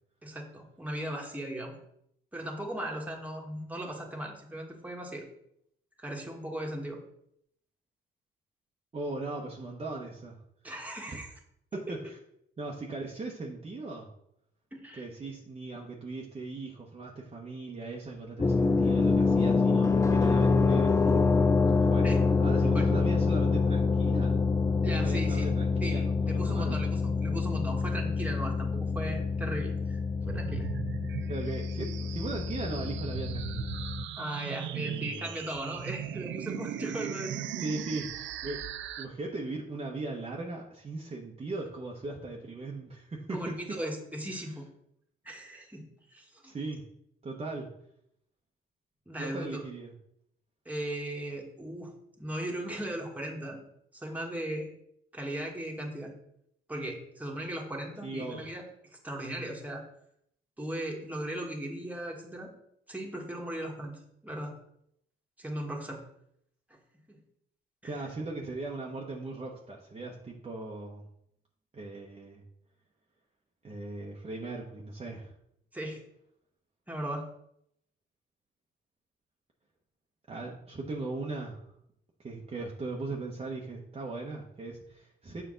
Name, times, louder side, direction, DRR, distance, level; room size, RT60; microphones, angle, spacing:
voice 1, 0.2-1.8 2.3-5.3 6.0-7.0 10.6-11.3 11.7-12.0 14.7-15.1 22.0-22.2 22.7-22.8 24.8-25.5 25.8-30.7 34.2-37.6 43.3-44.7 45.2-46.5 49.1-49.6 50.6-51.9 52.2-53.6 53.9-54.7 55.1-56.1 56.7-58.6 59.0-59.8 60.6-62.5 62.9-64.5 65.4-66.0 67.1-67.2 67.8-68.0 75.7-76.0 76.9-77.3, right 1 dB, 5° right, 0 dB, 1.6 m, -37 dB
voice 2, 8.9-10.4 11.1-11.2 11.7-12.2 12.6-14.1 14.9-21.0 21.7-22.1 22.4-24.4 24.9-26.8 31.3-33.7 34.7-35.3 37.6-38.6 39.0-43.8 44.3-44.5 46.4-46.8 47.2-47.7 49.2-49.9 58.0-58.4 67.8-71.1 71.7-72.4 73.6-75.3 80.3-81.7 82.2-85.4, right 3 dB, 30° right, -2 dB, 1.0 m, -38 dB
sound 1, 18.4-34.1, left 4 dB, 15° left, 0.4 m, -26 dB
sound 2, 30.3-39.1, right 11 dB, 70° right, 0.5 m, -39 dB
7.0 x 5.0 x 3.9 m, 0.73 s
cardioid pair, 90°, 20 cm